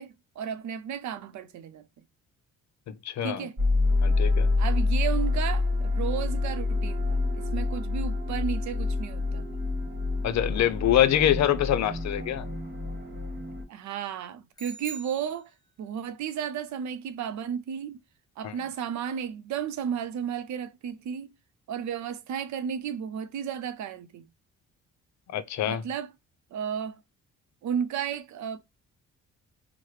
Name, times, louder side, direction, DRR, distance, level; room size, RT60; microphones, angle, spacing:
voice 1, 0.0-1.9 3.2-3.6 4.6-9.6 13.7-15.5 15.8-18.0 18.4-21.3 21.7-24.3 25.6-26.1 26.5-27.0 27.6-28.6, right 8 dB, 70° right, 0.6 m, -33 dB
voice 2, 3.0-3.5 4.0-4.5 10.2-12.5 18.4-18.6 25.3-25.8, left 11 dB, 65° left, 0.6 m, -25 dB
sound 1, 3.6-13.6, left 3 dB, 35° right, 1.3 m, -27 dB
sound 2, 14.6-16.0, right 3 dB, 15° left, 0.7 m, -45 dB
4.7 x 2.1 x 3.1 m
cardioid pair, 90°, 30 cm